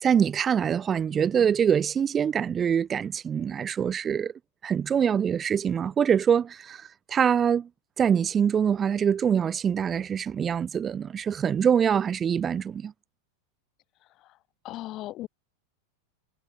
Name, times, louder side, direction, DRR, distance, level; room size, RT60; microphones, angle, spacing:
voice 1, 0.0-4.3 4.6-7.7 8.0-12.9, right 8 dB, 20° right, 0.4 m, -24 dB
voice 2, 14.6-15.3, left 16 dB, 35° left, 5.4 m, -37 dB
supercardioid pair, 155°, 0 cm